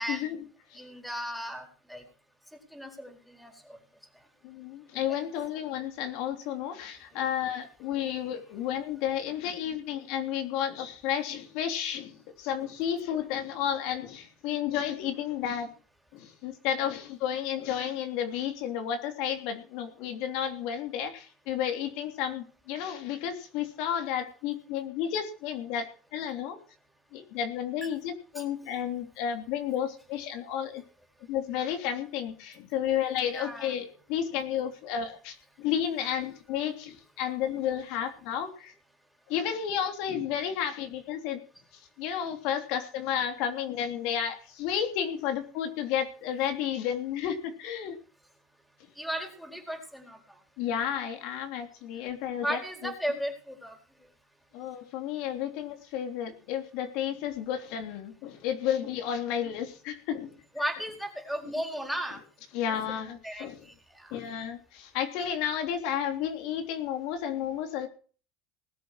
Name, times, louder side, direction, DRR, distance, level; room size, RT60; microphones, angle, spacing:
voice 1, 0.1-0.8 4.4-15.7 16.1-26.6 27.1-30.8 31.3-38.7 39.3-41.4 42.0-48.0 50.6-52.9 54.5-60.4 61.4-61.5 62.5-63.7 64.1-67.9, left 9 dB, 70° left, 6 dB, 3.2 m, -32 dB
voice 2, 0.7-2.0 2.7-3.8 33.3-33.7 49.0-50.2 52.4-53.7 60.6-62.2 63.2-63.5 63.9-64.1, equal, ahead, 5 dB, 4.5 m, -35 dB
19.5 x 7.7 x 6.5 m, 0.39 s
supercardioid pair, 115°, 0 cm